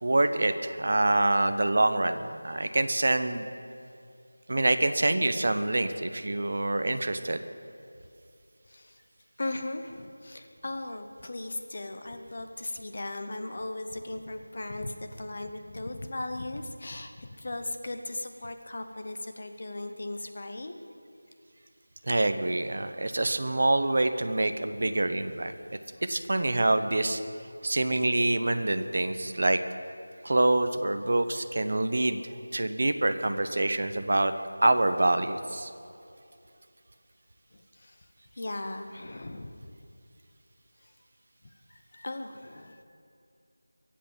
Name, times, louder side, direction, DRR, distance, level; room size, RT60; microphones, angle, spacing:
voice 1, 0.0-3.4 4.5-7.4 22.0-25.5 26.0-27.2 27.6-29.6 30.2-32.2 32.5-34.3 34.6-35.7, right 2 dB, 35° right, 9 dB, 0.7 m, -26 dB
voice 2, 8.7-9.0 9.4-20.7 37.5-38.0 38.3-39.6 41.7-42.8, left 2 dB, 30° left, 6 dB, 0.9 m, -37 dB
23.0 x 8.1 x 7.3 m, 2.5 s
figure-of-eight pair, 180°, 0 cm